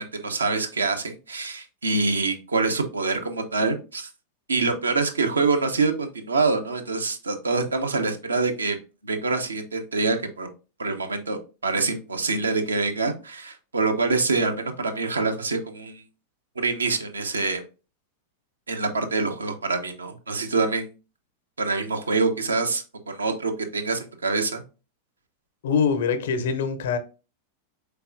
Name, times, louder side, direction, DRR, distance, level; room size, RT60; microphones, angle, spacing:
voice 1, 0.0-4.1 4.5-8.8 9.0-10.5 10.8-16.0 16.6-17.6 18.7-20.9 21.6-24.6, right 3 dB, 75° right, 5 dB, 0.6 m, -25 dB
voice 2, 25.6-27.0, left 6 dB, 60° left, 10 dB, 0.6 m, -23 dB
4.2 x 3.4 x 2.4 m, 0.32 s
figure-of-eight pair, 90°, 0 cm